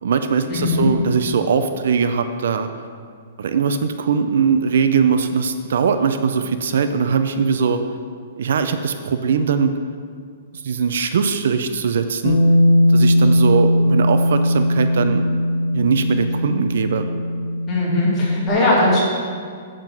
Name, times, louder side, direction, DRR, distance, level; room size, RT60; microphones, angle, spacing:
voice 1, 0.0-2.7 3.4-7.8 8.4-9.7 10.5-12.4 12.9-15.3 15.7-17.1, right 6 dB, 65° right, 8 dB, 0.5 m, -20 dB
voice 2, 0.6-0.9 17.7-19.0, left 2 dB, 15° left, -6 dB, 2.3 m, -18 dB
Bass guitar, 12.2-18.5, left 1 dB, 65° left, 0.8 m, -18 dB
7.4 x 7.4 x 6.1 m, 2.1 s
hypercardioid pair, 170°, 0 cm